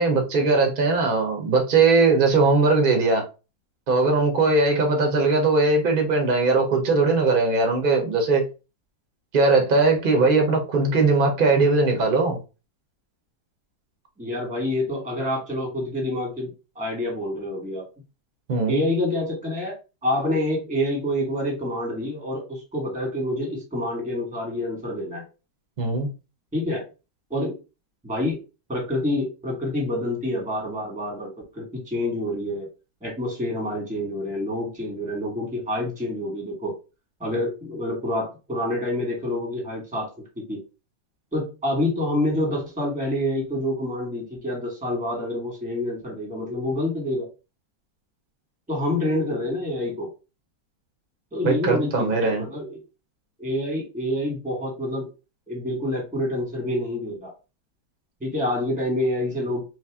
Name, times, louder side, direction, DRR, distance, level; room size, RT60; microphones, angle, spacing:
voice 1, 0.0-3.2 3.9-8.4 9.3-12.4 18.5-18.8 25.8-26.1 51.4-52.4, right 3 dB, 45° right, 0.6 m, -20 dB
voice 2, 14.2-16.5 16.7-17.8 18.7-25.2 26.5-26.8 27.3-27.5 28.0-28.4 28.7-32.7 33.0-36.7 37.2-40.1 40.5-40.6 41.3-47.3 48.7-50.1 51.3-52.8 53.4-55.1 55.5-57.3 58.2-59.6, left 1 dB, 5° right, 1.2 m, -27 dB
3.2 x 2.7 x 3.5 m
omnidirectional pair, 2.1 m